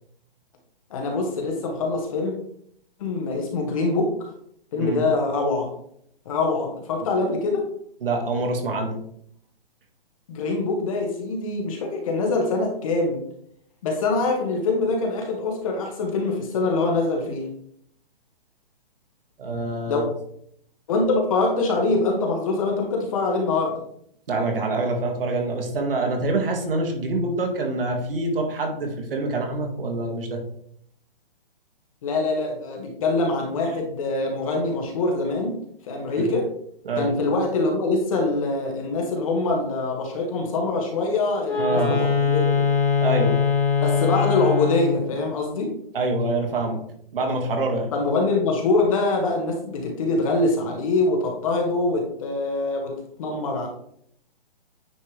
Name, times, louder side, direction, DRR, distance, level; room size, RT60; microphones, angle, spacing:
voice 1, 0.9-2.3 3.0-4.1 4.7-5.7 6.2-7.6 10.3-13.2 13.8-17.5 19.9-20.0 20.9-23.8 32.0-35.5 35.9-36.5 37.0-42.7 43.8-45.7 47.9-52.9 53.2-53.7, left 3 dB, 35° left, 1 dB, 1.3 m, -24 dB
voice 2, 8.0-9.0 19.4-20.0 24.3-30.4 36.2-36.3 36.9-37.1 41.6-42.0 43.0-43.4 45.9-46.8 47.1-47.9, right 2 dB, 70° right, 2 dB, 1.7 m, -25 dB
Wind instrument woodwind instrument, 41.4-45.1, left 5 dB, 5° left, 0.5 m, -22 dB
9.3 x 3.3 x 3.3 m, 0.68 s
hypercardioid pair, 165°, 29 cm